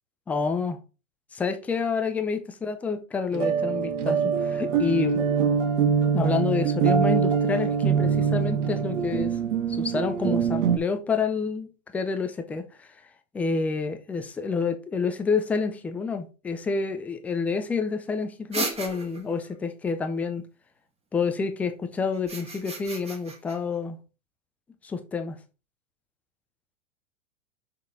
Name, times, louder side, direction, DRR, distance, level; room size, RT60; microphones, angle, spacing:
voice 1, 0.3-0.8 1.3-5.2 6.1-9.3 9.7-12.9 13.3-20.4 21.1-24.0 24.8-25.4, left 5 dB, 5° left, 0.3 m, -28 dB
sound 1, 3.3-10.8, right 6 dB, 60° right, 1.7 m, -24 dB
sound 2, 18.5-19.4 22.1-23.6, right 3 dB, 15° right, 1.7 m, -34 dB
6.7 x 5.2 x 3.7 m
hypercardioid pair, 110°, 41 cm